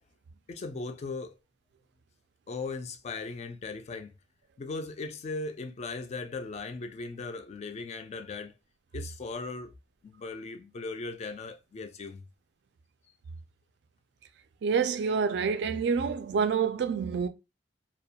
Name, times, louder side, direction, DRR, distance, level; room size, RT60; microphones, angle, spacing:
voice 1, 0.5-1.4 2.5-4.1 4.6-8.5 8.9-9.7 10.0-12.2, left 3 dB, 35° left, 0.3 m, -38 dB
voice 2, 14.6-17.3, right 6 dB, 65° right, 0.3 m, -27 dB
2.3 x 2.1 x 2.7 m
head